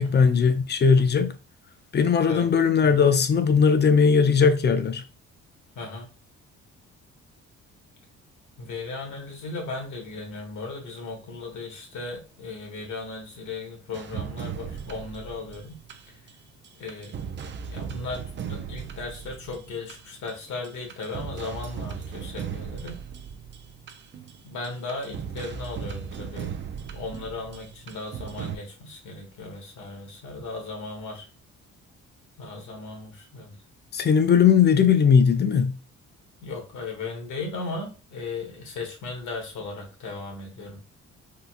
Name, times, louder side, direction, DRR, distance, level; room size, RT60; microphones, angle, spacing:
voice 1, 0.0-1.3 1.9-5.0 33.9-35.7, left 6 dB, 35° left, 0.5 m, -19 dB
voice 2, 5.7-6.1 8.6-15.8 16.8-17.2 17.6-23.0 24.4-26.6 26.9-31.3 32.4-33.5 36.4-40.8, left 3 dB, 75° left, 1.3 m, -36 dB
sound 1, 13.9-16.3 16.6-20.3 20.6-28.6, right 7 dB, 40° right, 0.4 m, -37 dB
3.8 x 2.3 x 2.5 m
cardioid pair, 90°, 30 cm